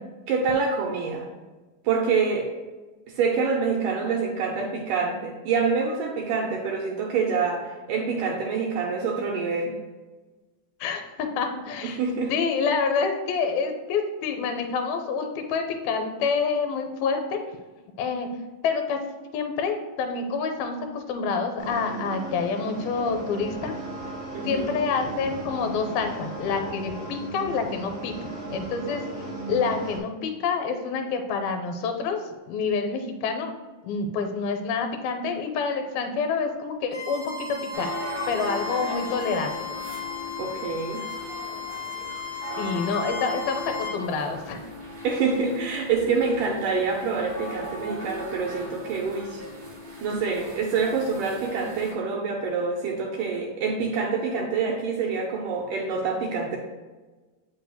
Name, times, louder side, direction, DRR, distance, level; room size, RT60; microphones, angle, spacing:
voice 1, 0.3-1.3 1.8-2.5 3.1-9.8 11.8-12.3 24.3-24.8 40.4-41.0 45.0-49.4 50.0-56.6, right 5 dB, 80° right, -1 dB, 1.9 m, -26 dB
voice 2, 10.8-12.0 12.3-17.4 18.0-18.3 18.6-19.0 19.3-23.7 24.4-28.1 28.5-29.0 29.5-32.2 32.5-33.5 33.8-37.9 38.3-39.6 42.6-44.7, left 5 dB, 80° left, 5 dB, 2.5 m, -27 dB
sound 1, 21.6-30.0, right 2 dB, 55° right, 0.7 m, -36 dB
Bowed string instrument, 36.9-44.0, left 5 dB, 30° left, 1.4 m, -36 dB
sound 2, 37.7-51.9, left 1 dB, 40° right, 1.3 m, -38 dB
8.0 x 5.5 x 2.2 m, 1.3 s
omnidirectional pair, 4.3 m